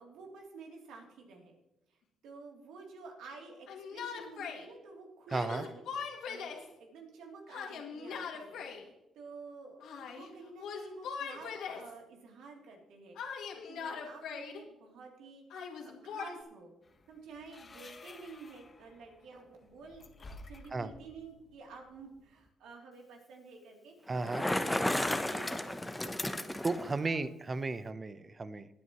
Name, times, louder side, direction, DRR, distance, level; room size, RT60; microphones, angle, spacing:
voice 1, 0.0-1.6 1.9-5.9 6.3-16.7 17.1-20.0 20.3-26.5 27.0-27.2, right 4 dB, 85° right, 0 dB, 3.1 m, -51 dB
Yell, 3.7-4.6 5.3-6.7 7.5-8.8 9.8-10.3 10.6-11.9 13.2-14.6 15.5-16.4, left 6 dB, 85° left, 2.2 m, -41 dB
voice 2, 5.3-5.6 20.7-20.9 24.1-24.4 26.6-28.7, right 3 dB, 30° right, 13 dB, 0.8 m, -34 dB
sound 1, 16.8-22.5, left 2 dB, 35° left, 1.3 m, -54 dB
Bicycle, 24.1-26.9, left 1 dB, 10° left, 0.9 m, -33 dB
19.0 x 9.5 x 3.1 m, 0.90 s
cardioid pair, 90°, 0 cm